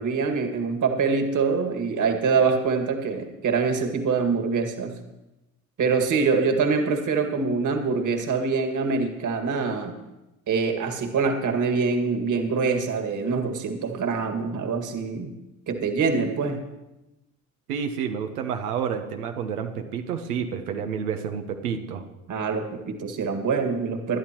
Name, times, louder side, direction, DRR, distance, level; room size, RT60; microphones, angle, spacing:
voice 1, 0.0-4.9 5.8-9.9 10.5-15.3 15.7-16.6 22.3-24.2, right 5 dB, 45° right, 5 dB, 2.0 m, -24 dB
voice 2, 17.7-22.0, right 7 dB, 90° right, 4 dB, 1.1 m, -29 dB
21.0 x 11.5 x 3.0 m, 0.96 s
hypercardioid pair, 70°, 43 cm